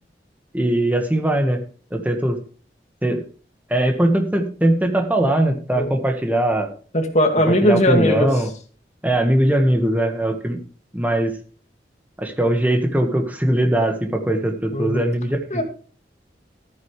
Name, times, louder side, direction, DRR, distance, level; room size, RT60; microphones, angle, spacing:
voice 1, 0.5-1.6 1.9-2.4 3.0-3.2 3.7-6.7 7.5-8.5 9.0-10.6 10.9-11.3 12.2-15.6, right 1 dB, 10° right, 4 dB, 1.6 m, -20 dB
voice 2, 6.9-8.3 14.7-15.0 15.5-15.6, equal, 40° left, 4 dB, 2.2 m, -19 dB
15.0 x 9.3 x 3.3 m, 0.40 s
head